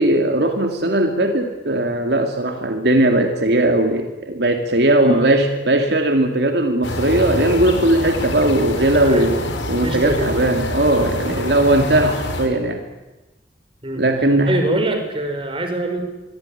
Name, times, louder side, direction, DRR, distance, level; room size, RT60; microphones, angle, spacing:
voice 1, 0.0-9.3 9.7-12.8 14.0-14.6, right 1 dB, 65° right, 5 dB, 2.5 m, -18 dB
voice 2, 5.0-5.3 9.0-9.6 9.8-10.3 11.7-11.9 13.8-14.0 14.5-16.0, right 1 dB, 30° right, 5 dB, 5.2 m, -24 dB
sound 1, 6.8-12.5, left 1 dB, 90° left, 5.4 m, -26 dB
25.0 x 23.5 x 10.0 m, 1.1 s
head